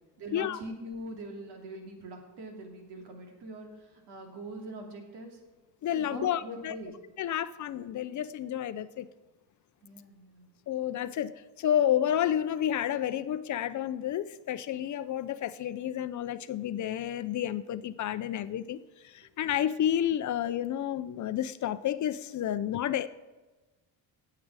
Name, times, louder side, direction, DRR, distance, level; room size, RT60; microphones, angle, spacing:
voice 1, 0.2-3.7 3.9-5.4 5.9-6.9 9.8-10.5, right 1 dB, 75° right, 2 dB, 2.7 m, -42 dB
voice 2, 5.8-6.8 7.2-9.1 10.7-11.3 11.6-18.8 19.0-23.1, left 10 dB, 45° left, 14 dB, 0.5 m, -30 dB
18.5 x 7.7 x 4.8 m, 1.2 s
cardioid pair, 125°, 41 cm